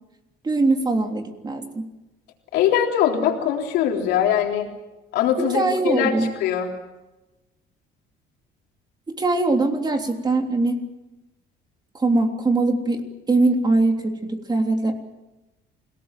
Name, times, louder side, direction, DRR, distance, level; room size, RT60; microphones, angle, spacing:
voice 1, 0.4-1.9 5.4-6.3 9.1-10.8 11.9-14.9, right 2 dB, 25° right, 4 dB, 3.3 m, -22 dB
voice 2, 2.5-4.7 5.1-6.1 6.4-6.7, left 9 dB, 90° left, 2 dB, 3.7 m, -21 dB
28.0 x 18.0 x 7.7 m, 1.0 s
cardioid pair, 110°, 17 cm